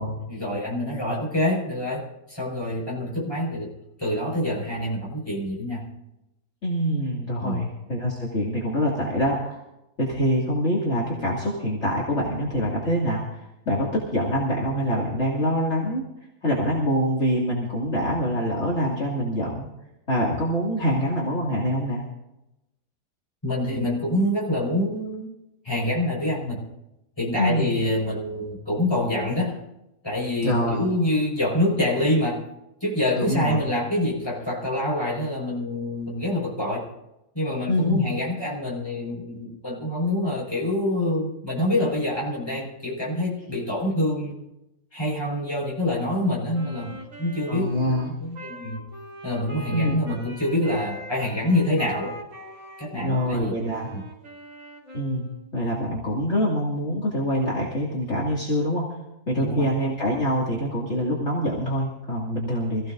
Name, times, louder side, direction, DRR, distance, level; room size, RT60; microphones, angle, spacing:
voice 1, 0.3-3.7 4.0-5.9 7.4-7.6 23.4-25.3 25.6-26.6 27.2-29.6 30.0-32.4 32.8-36.9 37.3-44.4 44.9-48.8 49.2-52.1 52.8-53.5 53.9-54.0 59.4-59.7, left 1 dB, 15° left, -4 dB, 5.4 m, -26 dB
voice 2, 6.6-9.6 10.0-16.0 16.4-19.7 20.1-22.0 27.4-27.8 30.4-30.9 33.2-33.6 37.7-38.0 47.5-48.1 49.7-50.1 52.9-53.9 54.9-58.8 59.3-62.9, equal, 45° left, -5 dB, 2.8 m, -25 dB
Wind instrument woodwind instrument, 46.5-55.5, equal, 55° right, 4.2 m, -41 dB
26.5 x 15.5 x 2.6 m, 0.90 s
omnidirectional pair, 1.6 m